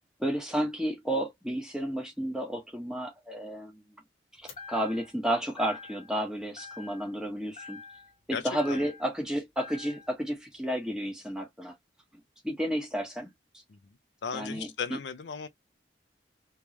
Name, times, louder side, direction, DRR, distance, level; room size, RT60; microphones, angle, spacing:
voice 1, 0.2-3.8 4.7-7.8 8.3-11.7 12.4-13.3 14.3-15.0, equal, 5° right, 1.3 m, -32 dB
sound 1, 4.5-5.2 5.6-6.2 6.6-7.3 7.6-9.2 9.6-10.2, left 5 dB, 35° left, 1.2 m, -47 dB
voice 2, 8.3-8.8 13.7-13.8 14.2-15.5, left 6 dB, 75° left, 0.5 m, -36 dB
3.5 x 3.1 x 3.0 m
head